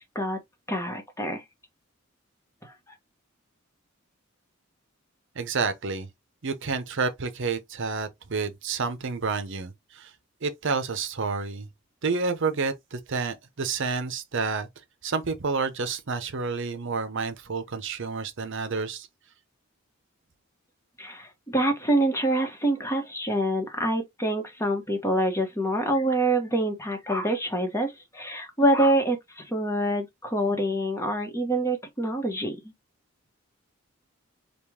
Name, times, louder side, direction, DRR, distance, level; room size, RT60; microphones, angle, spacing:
voice 1, 0.7-1.4 2.6-2.7 21.0-32.6, right 1 dB, 15° left, 1.2 m, -26 dB
voice 2, 5.4-6.1 6.4-10.1 10.4-11.7 12.0-14.7 15.0-19.1, right 4 dB, 60° right, 0.8 m, -29 dB
5.1 x 2.4 x 3.5 m
head